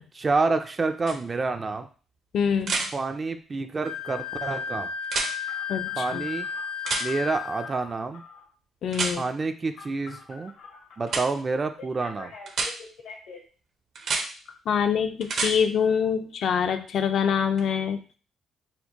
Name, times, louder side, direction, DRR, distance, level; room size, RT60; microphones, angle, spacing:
voice 1, 0.2-1.9 2.9-4.9 6.0-6.5 7.0-8.2 9.2-10.5 11.0-12.3, right 3 dB, 35° right, 7 dB, 0.3 m, -28 dB
sound 1, 1.1-1.2 2.6-2.9 5.0-5.3 6.9-7.1 8.9-9.1 11.1-11.2 12.5-12.7 14.0-14.3 15.2-15.5 17.6-17.7, right 4 dB, 65° right, 0.7 m, -27 dB
voice 2, 2.3-2.9 5.7-6.3 8.8-9.2 14.7-18.0, left 7 dB, 65° left, 8 dB, 0.4 m, -25 dB
Wind instrument woodwind instrument, 3.8-7.7, left 7 dB, 90° right, 1.0 m, -33 dB
Telephone, 5.1-8.5 9.7-11.3 11.8-13.4, left 4 dB, 85° left, 1.1 m, -45 dB
4.2 x 2.1 x 2.8 m, 0.38 s
cardioid pair, 90°, 0 cm